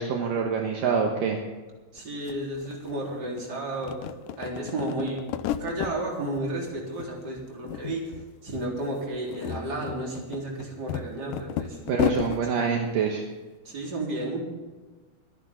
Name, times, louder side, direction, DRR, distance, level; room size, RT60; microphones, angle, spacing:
voice 1, 0.0-1.4 11.9-13.2, right 5 dB, 70° right, 1 dB, 2.7 m, -26 dB
voice 2, 1.9-4.0 4.4-5.3 5.6-8.1 8.4-11.8 12.5-12.6 13.6-14.4, right 1 dB, 25° right, -2 dB, 4.0 m, -32 dB
sound 1, 2.0-2.1 2.3-3.4 3.7-6.0 6.4-7.1 7.4-8.2 8.5-8.6 9.1-12.4, left 11 dB, 80° left, 2.0 m, -33 dB
25.0 x 10.5 x 3.7 m, 1.3 s
omnidirectional pair, 4.3 m